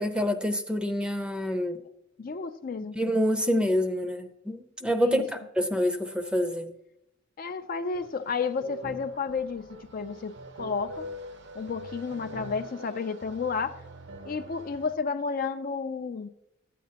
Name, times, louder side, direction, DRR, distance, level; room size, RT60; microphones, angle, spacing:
voice 1, 0.0-1.8 3.0-6.7, equal, 5° right, 0.6 m, -27 dB
voice 2, 2.2-3.0 5.0-5.2 7.4-11.1 11.6-13.8 14.2-16.3, left 5 dB, 45° left, 0.4 m, -32 dB
sound 1, 7.9-14.9, equal, 65° right, 0.8 m, -44 dB
12.5 x 8.4 x 2.8 m
head